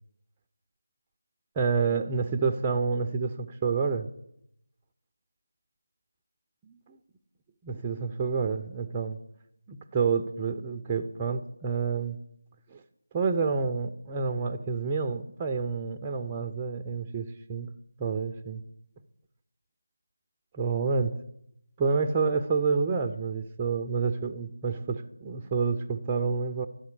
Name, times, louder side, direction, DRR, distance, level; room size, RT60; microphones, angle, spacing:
voice 1, 1.6-4.1 6.7-7.0 7.6-9.2 9.7-12.2 12.7-12.8 13.1-17.7 18.0-18.6 20.5-21.2 21.8-26.7, right 5 dB, 15° right, 5 dB, 0.4 m, -28 dB
12.5 x 4.2 x 8.2 m, 0.79 s
figure-of-eight pair, 165°, 0 cm